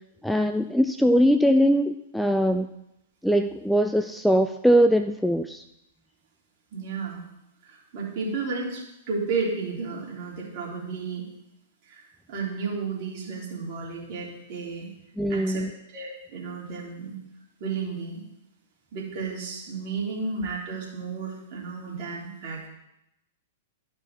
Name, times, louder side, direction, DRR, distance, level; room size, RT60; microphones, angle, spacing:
voice 1, 0.2-2.7 3.2-5.6 15.2-15.7, equal, ahead, 7 dB, 0.4 m, -21 dB
voice 2, 6.7-7.3 7.6-11.2 11.9-12.0 12.3-14.9 15.3-15.6 15.9-17.1 17.6-18.2 18.9-22.7, right 4 dB, 45° right, -5 dB, 3.3 m, -32 dB
11.5 x 5.4 x 4.3 m, 0.85 s
figure-of-eight pair, 105°, 0 cm